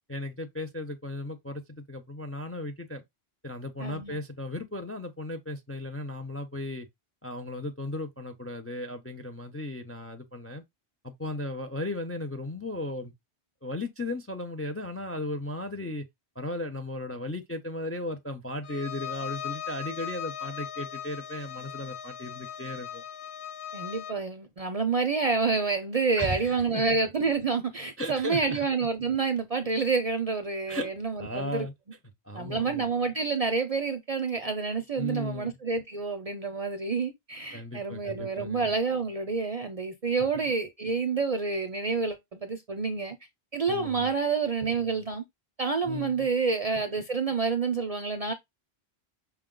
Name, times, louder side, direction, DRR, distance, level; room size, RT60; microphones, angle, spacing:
voice 1, 0.1-3.0 3.4-6.9 7.2-10.6 11.0-13.1 13.6-16.0 16.4-23.0 26.2-26.8 28.0-28.6 30.7-30.9 31.2-31.7 32.2-32.9 35.0-35.5 37.5-38.7 40.3-40.5 43.7-44.1 45.8-46.3, left 1 dB, 20° left, 0.4 m, -36 dB
voice 2, 3.8-4.2 23.7-31.7 32.3-43.2 43.5-45.2 45.6-48.3, right 4 dB, 50° right, 0.5 m, -28 dB
Bowed string instrument, 18.6-24.2, left 9 dB, 65° left, 0.9 m, -39 dB
5.6 x 2.3 x 3.7 m
omnidirectional pair, 1.1 m